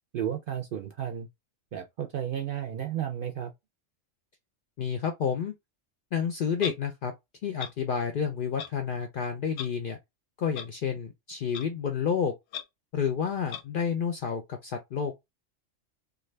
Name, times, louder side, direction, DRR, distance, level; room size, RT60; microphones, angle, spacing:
voice 1, 0.1-1.3 1.7-3.5, right 9 dB, 60° right, 0.6 m, -33 dB
voice 2, 4.8-5.5 6.1-7.1 7.4-10.0 10.4-12.3 12.9-15.1, left 7 dB, 65° left, 0.5 m, -30 dB
Clock, 6.6-6.7 7.6-7.7 8.6-8.7 9.5-9.7 10.5-10.7 11.5-11.6 12.5-12.6 13.5-13.6, left 9 dB, 90° left, 1.0 m, -36 dB
2.5 x 2.3 x 3.2 m
omnidirectional pair, 1.3 m